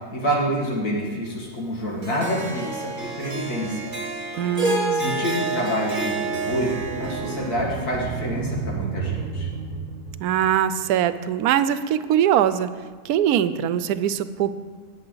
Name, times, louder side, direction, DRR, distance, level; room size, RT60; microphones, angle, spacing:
voice 1, 0.1-3.9 4.9-6.7 7.0-9.5, equal, 85° left, -2 dB, 2.6 m, -27 dB
Harp, 2.0-8.4, right 2 dB, 35° right, 1.5 m, -29 dB
voice 2, 4.4-5.1 10.2-12.7 13.0-14.5, right 10 dB, 85° right, 13 dB, 1.1 m, -22 dB
sound 1, 6.5-10.8, right 5 dB, 60° right, 1.2 m, -31 dB
19.5 x 7.4 x 3.9 m, 1.5 s
omnidirectional pair, 1.6 m